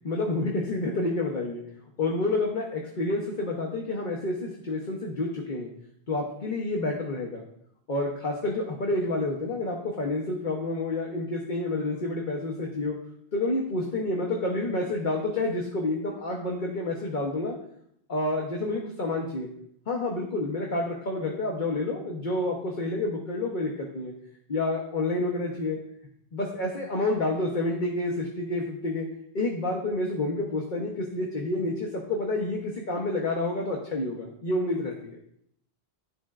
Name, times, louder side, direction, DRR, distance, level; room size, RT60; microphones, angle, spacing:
voice 1, 0.0-1.6 2.0-5.7 6.1-7.4 7.9-13.0 13.3-17.5 18.1-19.5 19.9-24.1 24.5-25.8 26.3-29.1 29.3-35.2, left 2 dB, 50° left, 0 dB, 1.0 m, -29 dB
13.0 x 4.3 x 2.4 m, 0.72 s
omnidirectional pair, 1.0 m